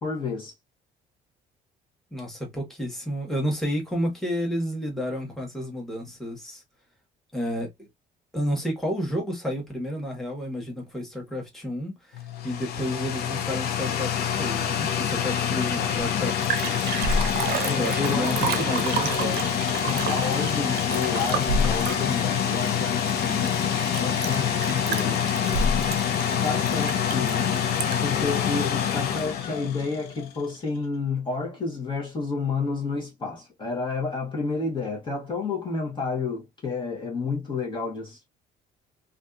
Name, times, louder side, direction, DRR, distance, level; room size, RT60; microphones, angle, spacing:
voice 1, 0.0-0.5 17.6-18.7 19.8-23.7 24.0-25.4 26.2-27.5 28.0-38.2, left 4 dB, 30° left, 1.0 m, -30 dB
voice 2, 2.1-6.6 7.3-7.9 8.3-16.9 17.8-19.6, equal, ahead, 1.2 m, -31 dB
sound 1, 12.1-30.3, left 8 dB, 70° left, 0.6 m, -26 dB
Liquid, 16.0-16.1 16.3-28.2 28.6-28.7, right 3 dB, 70° right, 0.6 m, -30 dB
2.6 x 2.4 x 2.3 m
cardioid pair, 110°, 17 cm